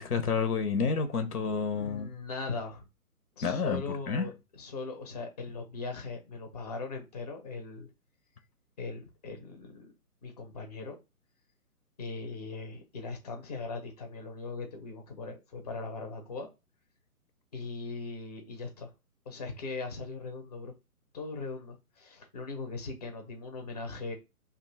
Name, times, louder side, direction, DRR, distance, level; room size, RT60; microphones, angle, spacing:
voice 1, 0.0-2.1 3.4-4.3, left 5 dB, 80° left, 0.8 m, -29 dB
voice 2, 1.7-2.9 3.4-7.9 8.8-9.9 10.2-11.0 12.0-16.5 17.5-18.9 19.3-20.7 21.1-24.1, left 3 dB, 30° left, 0.6 m, -39 dB
2.7 x 2.3 x 3.9 m
hypercardioid pair, 155°, 44 cm